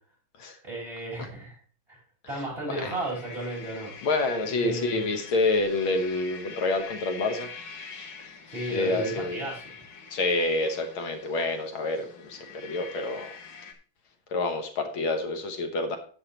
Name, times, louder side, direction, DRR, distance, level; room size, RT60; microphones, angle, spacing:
voice 1, 0.6-1.6 1.9-2.0 2.3-3.9 4.6-5.0 8.5-9.6, right 2 dB, 25° right, -4 dB, 5.2 m, -33 dB
voice 2, 2.3-2.9 4.0-7.5 8.7-9.4 10.1-13.4 14.3-16.0, left 2 dB, 75° left, 6 dB, 2.1 m, -28 dB
sound 1, 2.8-13.7, left 5 dB, 60° left, 1.9 m, -44 dB
12.0 x 8.8 x 3.0 m, 0.40 s
omnidirectional pair, 2.3 m